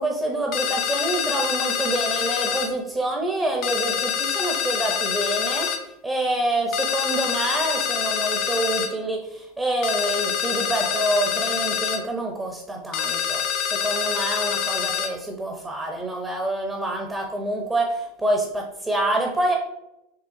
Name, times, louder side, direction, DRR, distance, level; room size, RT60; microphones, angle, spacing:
voice 1, 0.0-19.5, right 1 dB, 15° right, 1 dB, 0.8 m, -27 dB
sound 1, 0.5-2.7 3.6-5.8 6.7-8.9 9.8-12.0 12.9-15.1, left 8 dB, 50° left, 0.5 m, -26 dB
5.6 x 3.3 x 2.6 m, 0.88 s
supercardioid pair, 125°, 0 cm